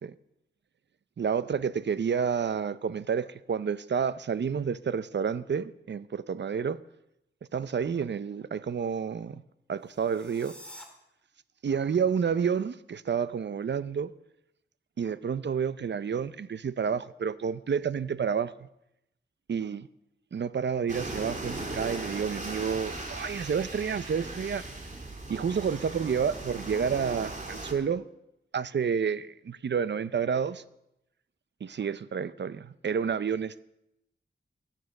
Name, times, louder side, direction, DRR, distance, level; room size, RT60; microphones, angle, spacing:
voice 1, 1.2-6.8 7.5-9.4 9.7-10.6 11.6-14.1 15.0-18.7 19.5-19.9 20.3-24.6 25.3-28.1 28.5-30.6 31.6-33.6, right 6 dB, 60° right, 0.6 m, -30 dB
sound 1, 9.8-10.8, equal, 5° left, 2.6 m, -48 dB
sound 2, 20.9-27.7, right 2 dB, 40° right, 2.9 m, -38 dB
21.0 x 7.5 x 6.5 m
wide cardioid pair, 90°, 20 cm